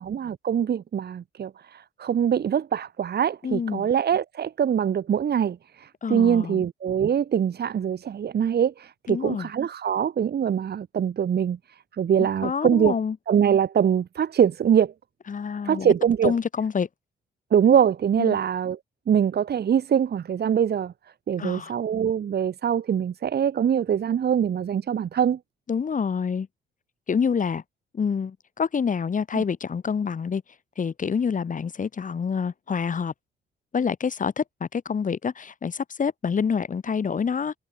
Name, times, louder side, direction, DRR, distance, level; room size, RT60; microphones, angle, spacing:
voice 1, 0.0-1.5 2.0-5.6 6.1-11.6 12.0-13.0 13.3-14.9 15.6-16.4 17.5-18.8 19.1-20.9 21.3-25.4 29.3-29.4, right 8 dB, 55° right, 2.9 m, -23 dB
voice 2, 3.4-3.9 6.0-6.6 9.1-9.5 12.2-13.2 15.3-15.9 16.2-16.9 18.2-18.4 21.4-21.7 25.7-26.5 27.1-27.6 27.9-30.4 30.8-33.1 33.7-37.5, left 6 dB, 40° left, 3.2 m, -27 dB
cardioid pair, 90°, 20 cm